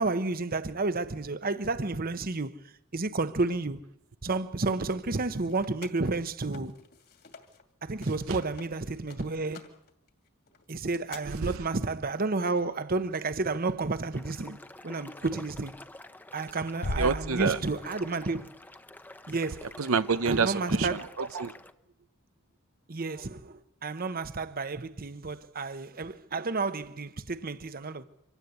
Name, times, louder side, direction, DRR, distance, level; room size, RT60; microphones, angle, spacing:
voice 1, 0.0-2.6 2.9-3.8 4.2-6.8 7.8-9.7 10.7-14.6 14.8-15.7 16.3-18.5 19.3-19.6 20.3-21.1 22.9-28.0, right 3 dB, 45° right, 1.0 m, -31 dB
sound 1, 5.0-7.6 7.9-11.2, left 6 dB, 50° left, 2.5 m, -52 dB
voice 2, 11.3-11.6 17.0-17.6 19.8-21.5, right 5 dB, 80° right, 0.8 m, -28 dB
sound 2, 14.1-21.7, left 1 dB, 10° left, 0.8 m, -48 dB
Bass drum, 16.8-18.3, left 1 dB, 70° left, 1.2 m, -35 dB
25.0 x 17.5 x 8.4 m
head